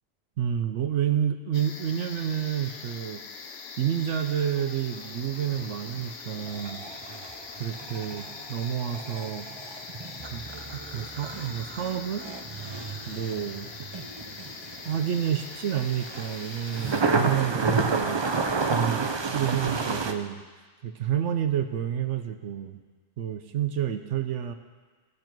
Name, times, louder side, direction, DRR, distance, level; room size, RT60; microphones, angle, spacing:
voice 1, 0.4-3.2 3.8-6.9 7.6-9.5 10.3-10.4 10.7-12.3 13.1-13.7 14.9-18.3 18.7-20.4 20.8-22.8 23.2-24.5, right 9 dB, 75° right, 7 dB, 0.9 m, -29 dB
sound 1, 1.5-17.0, left 5 dB, 60° left, 1.0 m, -42 dB
sound 2, 5.4-20.1, right 4 dB, 50° right, 0.3 m, -31 dB
15.5 x 6.6 x 4.5 m, 1.4 s
omnidirectional pair, 1.3 m